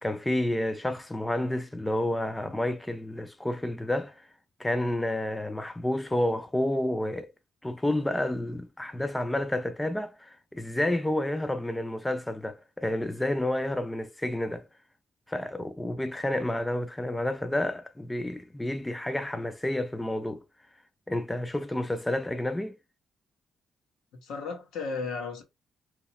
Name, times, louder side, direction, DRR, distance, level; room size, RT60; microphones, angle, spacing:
voice 1, 0.0-4.2 4.6-7.3 7.6-14.7 15.3-20.4 21.1-22.8, left 1 dB, 10° left, 0.4 m, -30 dB
voice 2, 24.2-25.4, left 4 dB, 80° left, 1.3 m, -34 dB
2.9 x 2.9 x 2.9 m
cardioid pair, 90°, 0 cm